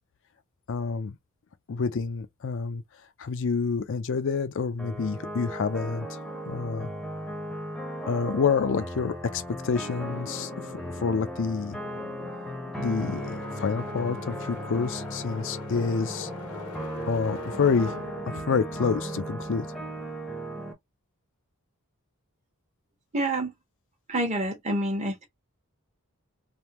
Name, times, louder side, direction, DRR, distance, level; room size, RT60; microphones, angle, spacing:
voice 1, 0.7-1.2 1.7-2.8 3.2-6.2 6.5-6.9 8.1-11.8 12.8-16.3 17.1-17.9 18.3-19.7, left 5 dB, 55° left, 0.5 m, -28 dB
sound 1, 4.8-20.7, right 1 dB, ahead, 0.8 m, -36 dB
sound 2, 9.9-19.9, left 4 dB, 85° left, 1.0 m, -43 dB
voice 2, 23.1-23.5 24.1-25.3, right 1 dB, 30° right, 1.0 m, -27 dB
3.5 x 2.3 x 2.9 m
head